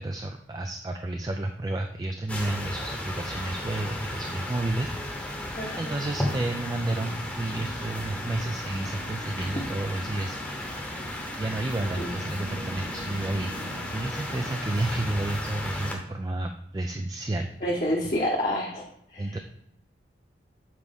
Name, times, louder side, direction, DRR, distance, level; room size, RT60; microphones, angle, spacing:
voice 1, 0.0-5.4 5.8-10.4 11.4-13.5 13.9-17.5 19.2-19.4, right 2 dB, 20° right, 5 dB, 0.3 m, -31 dB
sound 1, 2.3-15.9, left 1 dB, 5° left, 0.9 m, -34 dB
voice 2, 5.6-5.9 12.0-12.1 17.6-18.8 19.1-19.4, equal, 40° left, -4 dB, 0.9 m, -28 dB
7.5 x 4.6 x 3.5 m, 0.74 s
head